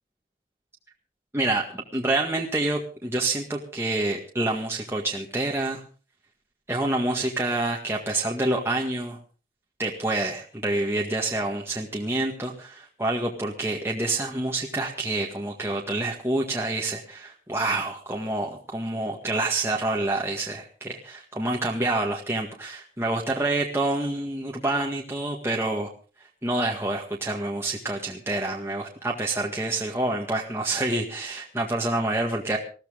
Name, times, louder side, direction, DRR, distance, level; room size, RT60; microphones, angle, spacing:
voice 1, 1.3-5.8 6.7-9.2 9.8-25.9 26.4-32.6, right 2 dB, 15° right, -1 dB, 1.8 m, -27 dB
20.0 x 15.0 x 3.7 m, 0.38 s
head